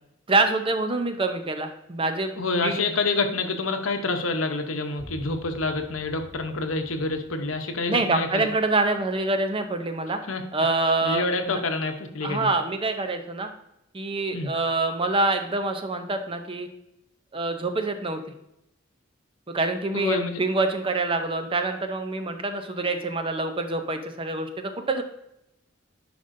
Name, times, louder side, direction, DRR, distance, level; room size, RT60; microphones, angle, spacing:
voice 1, 0.3-2.3 2.6-2.8 7.9-10.2 10.5-11.6 12.2-13.5 13.9-16.7 17.3-18.2 19.5-25.0, right 2 dB, 25° right, 7 dB, 0.6 m, -26 dB
voice 2, 2.4-8.5 10.3-10.4 11.0-12.5 14.3-14.5 19.9-20.4, left 3 dB, 85° left, 6 dB, 0.9 m, -27 dB
sound 1, 5.0-10.6, left 1 dB, 20° left, 1.4 m, -49 dB
10.0 x 5.2 x 2.7 m, 0.84 s
head